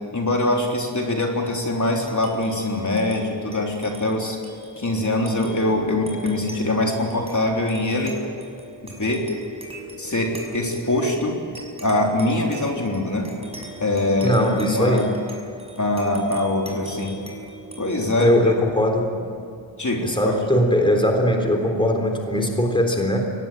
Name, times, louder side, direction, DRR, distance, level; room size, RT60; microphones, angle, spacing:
voice 1, 0.1-4.4 4.8-8.2 8.8-9.3 10.0-11.4 11.8-13.3 13.8-15.1 15.8-17.2 17.8-18.4 19.8-20.3, left 2 dB, 40° left, 0 dB, 3.6 m, -23 dB
sound 1, 1.8-20.7, right 1 dB, 15° right, 5.9 m, -41 dB
voice 2, 14.2-15.1 18.2-19.3 20.0-23.2, left 1 dB, 10° left, 3 dB, 3.6 m, -20 dB
23.5 x 19.0 x 9.1 m, 2.5 s
wide cardioid pair, 100°, 44 cm